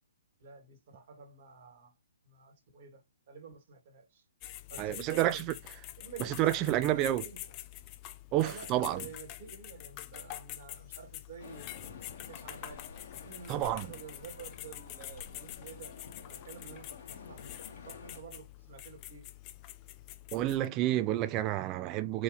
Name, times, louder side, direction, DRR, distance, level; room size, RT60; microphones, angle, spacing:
voice 1, 0.4-1.9 2.2-3.0 3.3-4.2 4.7-5.5 6.0-7.5 8.4-12.8 13.2-16.0 16.3-17.4 17.8-19.2, right 6 dB, 50° right, 1.9 m, -49 dB
sound 1, 4.4-20.7, left 15 dB, 30° left, 0.4 m, -46 dB
voice 2, 4.8-5.4 6.4-7.2 8.3-9.0 13.5-13.9 20.3-22.2, right 14 dB, 30° right, 0.5 m, -29 dB
sound 2, 11.4-18.2, left 5 dB, 50° left, 1.3 m, -50 dB
4.6 x 2.8 x 3.9 m
hypercardioid pair, 135°, 0 cm